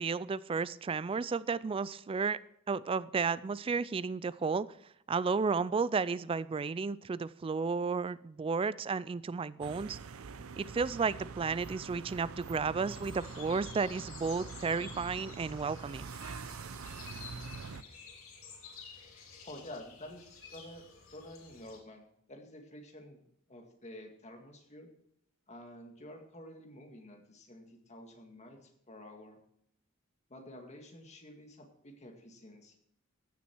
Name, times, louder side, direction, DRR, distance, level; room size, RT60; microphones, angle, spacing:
voice 1, 0.0-2.4 2.7-4.7 5.1-10.0 10.6-16.1, right 5 dB, 25° right, 18 dB, 0.3 m, -33 dB
sound 1, 9.6-17.8, right 5 dB, 90° right, 0.6 m, -45 dB
sound 2, 12.8-21.8, left 6 dB, 75° left, 3.0 m, -52 dB
voice 2, 19.4-23.2 23.5-24.9 25.5-29.4 30.3-32.8, left 1 dB, 35° left, 3 dB, 2.0 m, -50 dB
15.5 x 7.1 x 4.6 m, 0.73 s
head